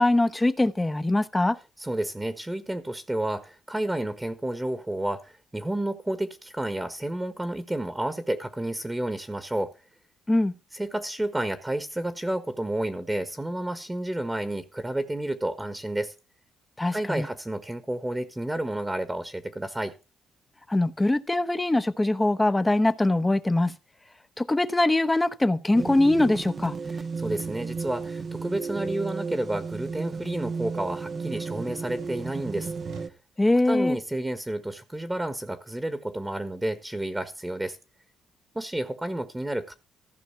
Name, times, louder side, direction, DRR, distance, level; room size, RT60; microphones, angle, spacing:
voice 1, 0.0-1.6 10.3-10.5 16.8-17.3 20.7-23.7 24.4-26.7 33.4-34.0, left 2 dB, 15° left, 0.9 m, -22 dB
voice 2, 1.8-9.7 10.7-16.1 16.9-20.0 26.9-33.1 33.6-37.8 38.5-39.7, right 1 dB, 10° right, 1.3 m, -31 dB
sound 1, 25.7-33.1, right 5 dB, 40° right, 0.8 m, -34 dB
Tap, 25.7-33.2, right 5 dB, 80° right, 5.5 m, -50 dB
15.0 x 5.8 x 5.7 m
cardioid pair, 90°, 0 cm